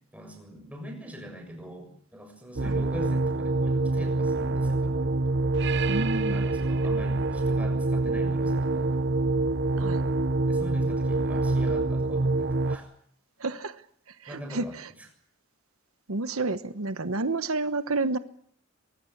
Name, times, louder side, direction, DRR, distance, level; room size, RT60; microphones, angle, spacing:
voice 1, 0.1-5.2 6.3-9.0 10.5-12.9 14.3-14.8, equal, 5° right, 3 dB, 6.9 m, -43 dB
sound 1, 2.6-12.8, right 2 dB, 55° right, 1.0 m, -26 dB
voice 2, 5.9-6.5 9.8-10.0 13.4-13.8 14.1-14.9 16.1-18.2, right 3 dB, 85° right, 11 dB, 1.2 m, -30 dB
24.0 x 21.5 x 8.7 m, 0.65 s
head